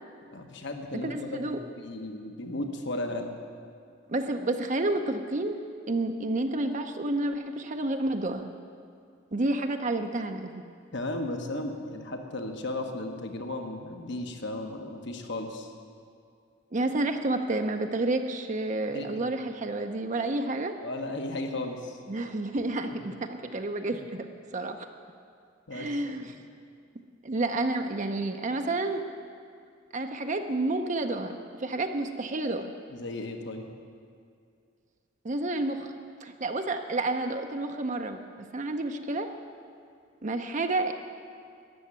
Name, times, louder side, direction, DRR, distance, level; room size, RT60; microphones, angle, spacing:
voice 1, 0.3-3.3 10.9-15.7 18.9-19.2 20.8-22.0 23.9-24.0 25.7-26.4 32.9-33.7, left 2 dB, 65° left, 5 dB, 1.3 m, -35 dB
voice 2, 0.9-1.6 4.1-5.6 5.9-8.5 9.3-10.6 16.7-20.8 22.1-24.3 24.5-24.9 25.7-26.3 27.2-29.1 29.9-32.7 35.2-35.9 36.2-39.3 40.2-40.9, right 2 dB, 40° right, 6 dB, 0.7 m, -30 dB
13.0 x 7.2 x 9.9 m, 2.4 s
head